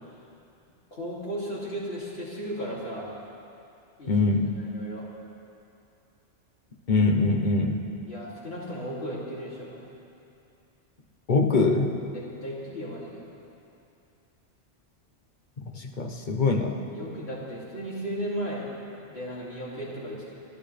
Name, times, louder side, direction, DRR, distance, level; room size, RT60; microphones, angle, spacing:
voice 1, 0.9-3.1 4.0-4.2 4.6-5.1 8.1-9.8 12.1-13.2 16.9-18.6 19.1-20.3, equal, 60° left, -6 dB, 3.1 m, -35 dB
voice 2, 4.1-4.5 6.9-7.8 11.3-11.9 15.7-16.8, left 3 dB, 45° left, 2 dB, 1.2 m, -23 dB
27.5 x 11.5 x 3.4 m, 2.7 s
omnidirectional pair, 1.2 m